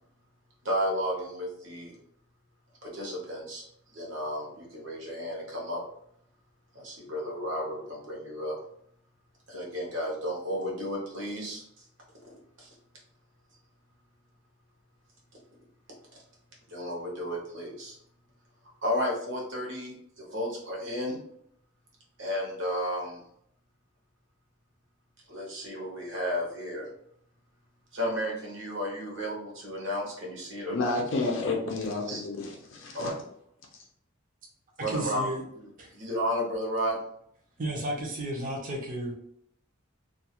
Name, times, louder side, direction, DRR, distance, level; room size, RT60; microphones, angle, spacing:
voice 1, 0.6-2.0 2.8-3.6 3.9-5.8 6.7-8.6 9.5-11.6 12.6-12.7 16.7-18.0 18.8-21.2 22.2-23.2 25.3-26.9 27.9-30.9 32.1-32.2 32.9-33.1 34.8-35.3 35.9-37.0, equal, 65° right, -2 dB, 0.9 m, -33 dB
voice 2, 30.7-33.1, left 3 dB, 70° left, 0 dB, 0.5 m, -30 dB
voice 3, 34.9-35.4 35.8-35.9 37.6-39.1, right 1 dB, 40° right, -2 dB, 0.6 m, -33 dB
2.3 x 2.3 x 2.8 m, 0.70 s
head